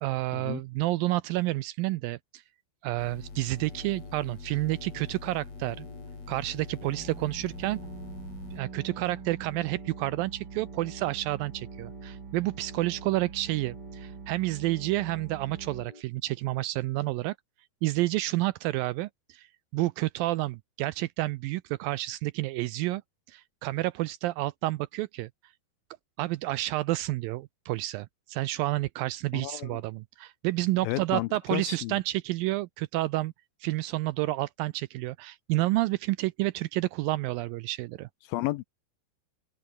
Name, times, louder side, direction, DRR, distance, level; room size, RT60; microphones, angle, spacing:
voice 1, 0.0-2.4 2.8-5.9 6.3-7.8 8.5-17.4 17.8-19.5 19.7-23.0 23.3-25.3 26.2-33.3 33.6-38.1, right 18 dB, 80° right, 2.1 m, -30 dB
sound 1, 3.0-8.6, left 4 dB, 40° left, 5.8 m, -44 dB
sound 2, 3.2-16.0, left 3 dB, 25° left, 5.0 m, -53 dB
sound 3, 6.8-15.9, right 6 dB, 35° right, 2.6 m, -44 dB
voice 2, 29.3-29.8 30.8-32.0 38.3-38.6, left 17 dB, 80° left, 2.2 m, -32 dB
open air
omnidirectional pair, 4.5 m